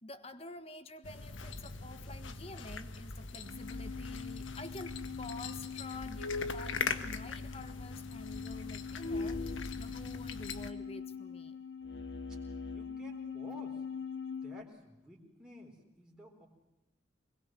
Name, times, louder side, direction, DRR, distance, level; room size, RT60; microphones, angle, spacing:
voice 1, 0.0-11.6, left 2 dB, 30° left, 1.6 m, -49 dB
sound 1, 1.0-10.7, left 4 dB, 85° left, 1.6 m, -41 dB
sound 2, 3.4-14.6, left 5 dB, 65° left, 1.5 m, -42 dB
voice 2, 12.7-13.8 14.4-16.5, equal, 5° right, 4.1 m, -52 dB
24.5 x 21.5 x 7.7 m
head